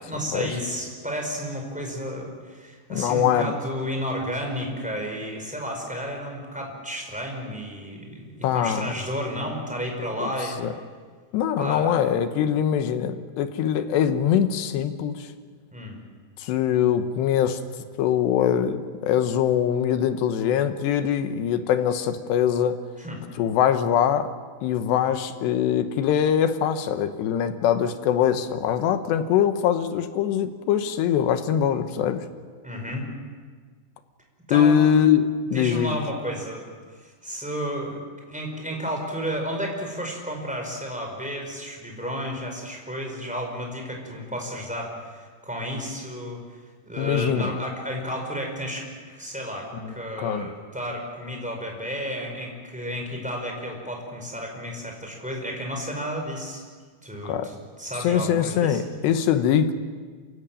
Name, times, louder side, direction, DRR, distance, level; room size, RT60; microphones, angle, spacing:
voice 1, 0.0-10.6 11.6-11.9 15.7-16.0 23.0-23.2 32.6-33.1 34.5-34.8 35.5-38.0 38.3-46.6 46.8-56.6 57.0-58.8, equal, ahead, 1 dB, 4.6 m, -32 dB
voice 2, 2.9-3.5 8.4-8.9 10.2-10.3 10.6-10.7 11.3-15.3 16.4-17.6 18.0-22.8 23.4-24.3 24.6-32.2 34.5-36.0 47.0-47.4 49.8-50.5 57.2-57.5 58.0-59.7, left 9 dB, 85° left, 9 dB, 3.3 m, -23 dB
27.5 x 16.0 x 8.9 m, 1.6 s
omnidirectional pair, 4.9 m